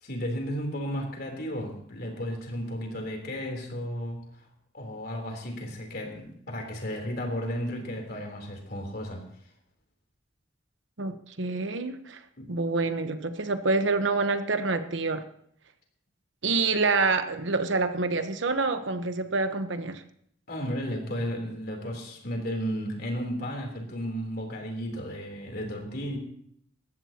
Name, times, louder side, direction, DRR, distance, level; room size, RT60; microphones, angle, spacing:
voice 1, 0.0-4.5 4.7-9.2 12.4-12.5 20.5-26.2, equal, 55° left, 2 dB, 3.6 m, -34 dB
voice 2, 11.0-12.2 12.5-15.2 16.4-20.0, right 3 dB, 70° right, 9 dB, 1.1 m, -27 dB
20.0 x 15.0 x 2.9 m, 0.68 s
head